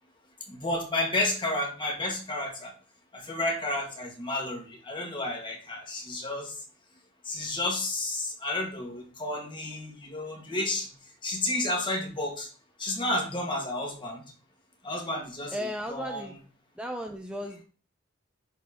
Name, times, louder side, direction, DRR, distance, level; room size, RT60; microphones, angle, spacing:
voice 1, 0.5-2.7 3.1-6.6 7.2-10.9 11.2-12.5 12.8-14.2 14.8-16.3, left 1 dB, 25° left, 1 dB, 1.7 m, -31 dB
voice 2, 15.5-16.3 16.7-17.6, equal, 5° right, 4 dB, 0.5 m, -35 dB
10.5 x 4.3 x 3.6 m, 0.41 s
head